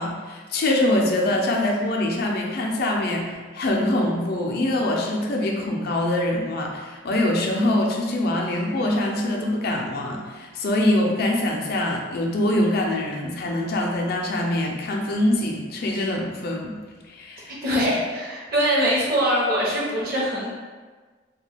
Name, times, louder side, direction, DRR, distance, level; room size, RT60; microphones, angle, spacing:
voice 1, 0.0-16.8 17.1-17.5, left 1 dB, 55° left, 0 dB, 0.4 m, -24 dB
voice 2, 17.6-20.5, equal, 50° right, -5 dB, 0.7 m, -23 dB
2.4 x 2.2 x 3.2 m, 1.4 s
head